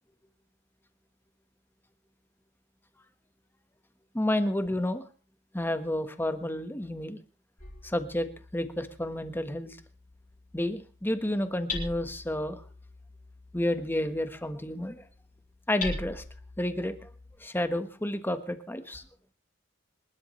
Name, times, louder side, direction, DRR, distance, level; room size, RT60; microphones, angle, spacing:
voice 1, 4.1-5.0 5.5-7.2 7.8-9.8 10.5-12.6 13.5-15.0 15.7-16.2 16.6-17.1 17.4-19.0, left 1 dB, 10° left, 9 dB, 1.3 m, -30 dB
Hammer, 7.6-17.4, left 3 dB, 45° left, 6.6 m, -43 dB
26.0 x 12.5 x 3.2 m, 0.34 s
head